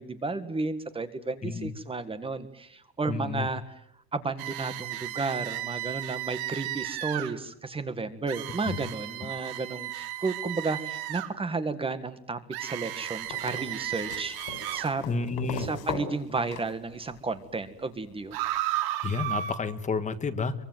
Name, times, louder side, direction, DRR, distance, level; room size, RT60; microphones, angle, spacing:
voice 1, 0.0-3.7 4.1-15.0 15.6-18.4, right 3 dB, 15° right, 11 dB, 1.7 m, -33 dB
voice 2, 3.1-3.4 8.7-8.8 15.1-15.6 19.0-20.5, left 4 dB, 20° left, 10 dB, 1.5 m, -30 dB
sound 1, 4.4-7.3 8.3-11.3 12.5-14.9 18.3-19.5, right 14 dB, 65° right, 2.7 m, -34 dB
sound 2, 13.2-17.3 18.6-18.7, left 6 dB, 90° left, 5.4 m, -38 dB
25.5 x 24.0 x 9.3 m, 0.72 s
cardioid pair, 170°, 40 cm